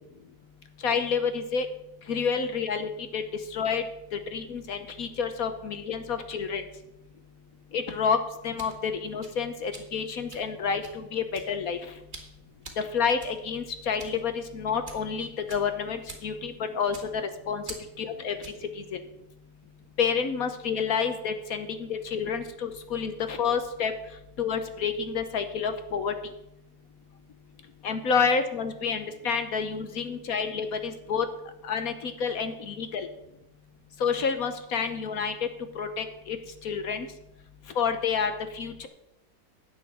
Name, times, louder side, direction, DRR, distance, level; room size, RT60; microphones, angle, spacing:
voice 1, 0.8-1.7 2.1-3.2 3.5-3.8 4.1-6.6 7.7-8.2 8.4-11.8 12.8-17.6 18.0-18.4 18.8-18.9 20.0-23.9 24.4-26.1 27.8-31.3 31.6-33.1 34.0-35.3 35.7-36.4 36.6-37.1 37.7-38.9, left 6 dB, 60° left, 8 dB, 1.2 m, -29 dB
sound 1, 8.3-18.7, right 2 dB, 30° right, 1.8 m, -48 dB
10.5 x 8.4 x 6.1 m, 0.85 s
omnidirectional pair, 1.9 m